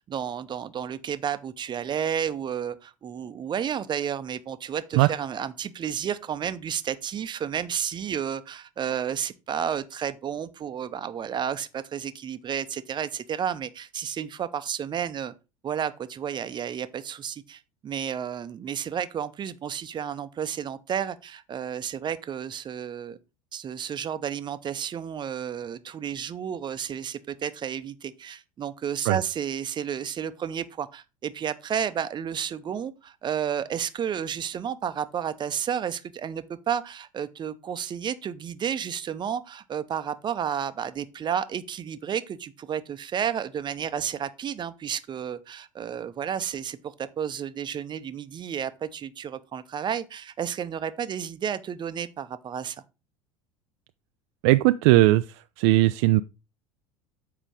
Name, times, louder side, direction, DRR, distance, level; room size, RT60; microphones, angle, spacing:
voice 1, 0.1-15.3 15.6-23.2 23.5-52.8, right 8 dB, 25° right, 0.8 m, -31 dB
voice 2, 54.4-55.2 55.6-56.2, right 18 dB, 50° right, 0.4 m, -18 dB
7.6 x 4.9 x 4.9 m
figure-of-eight pair, 70°, 17 cm